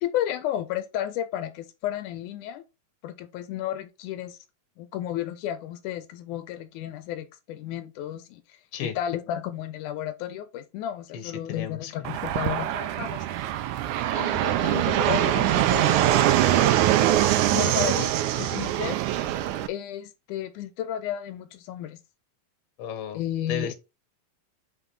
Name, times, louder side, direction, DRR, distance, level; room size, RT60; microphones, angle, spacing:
voice 1, 0.0-2.6 3.0-4.4 4.8-8.4 8.8-13.3 14.1-16.8 17.5-18.1 18.4-19.0 19.7-22.0 23.1-23.7, left 11 dB, 85° left, 2.2 m, -33 dB
voice 2, 11.1-12.1 22.8-23.2 23.5-23.7, left 7 dB, 65° left, 2.0 m, -34 dB
Fixed-wing aircraft airplane, 12.0-19.7, right 13 dB, 85° right, 2.0 m, -23 dB
5.2 x 4.0 x 5.3 m
omnidirectional pair, 3.5 m